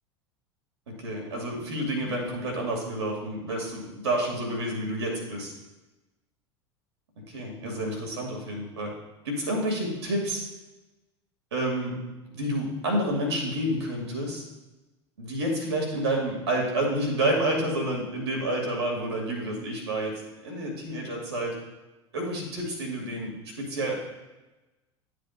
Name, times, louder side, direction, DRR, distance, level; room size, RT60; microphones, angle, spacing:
voice 1, 0.9-5.5 7.3-8.9 9.2-10.4 11.5-11.9 12.3-14.4 15.2-20.1 20.4-21.5 22.1-23.9, right 1 dB, 70° right, 0 dB, 2.6 m, -29 dB
12.0 x 7.6 x 2.6 m, 1.1 s
figure-of-eight pair, 75°, 14 cm